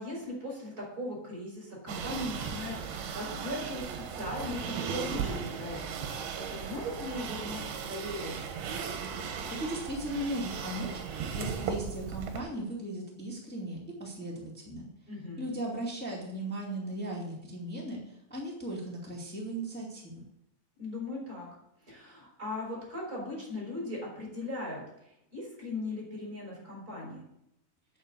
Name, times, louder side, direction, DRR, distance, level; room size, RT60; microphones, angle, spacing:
voice 1, 0.0-8.4 15.1-15.5 20.8-21.5 21.8-27.3, left 1 dB, 20° right, -3 dB, 4.9 m, -39 dB
sound 1, 1.9-12.4, right 6 dB, 70° right, 3.1 m, -37 dB
voice 2, 9.2-14.9 15.4-20.2, right 1 dB, 15° left, -4 dB, 0.3 m, -37 dB
9.1 x 6.6 x 8.2 m, 0.81 s
omnidirectional pair, 4.9 m